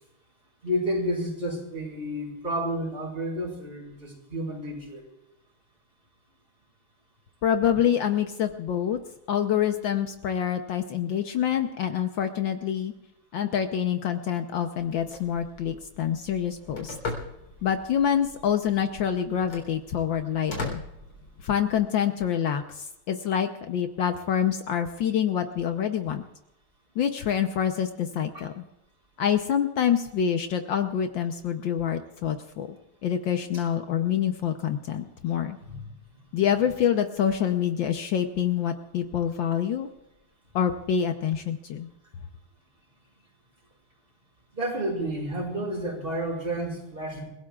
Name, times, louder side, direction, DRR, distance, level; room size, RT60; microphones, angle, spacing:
voice 1, 0.6-5.0 28.3-28.5 32.7-32.8 33.5-33.6 35.6-35.8 44.5-47.3, equal, 25° right, -2 dB, 5.2 m, -31 dB
voice 2, 7.4-9.0 9.3-12.9 13.3-17.0 17.6-20.8 21.4-26.2 27.0-28.6 29.2-32.7 33.0-35.6 36.3-39.9 40.5-41.9, left 9 dB, 70° left, 6 dB, 1.5 m, -26 dB
Telephone, 14.8-21.8, left 2 dB, 90° left, 4.6 m, -40 dB
29.0 x 17.0 x 2.4 m, 0.93 s
omnidirectional pair, 2.3 m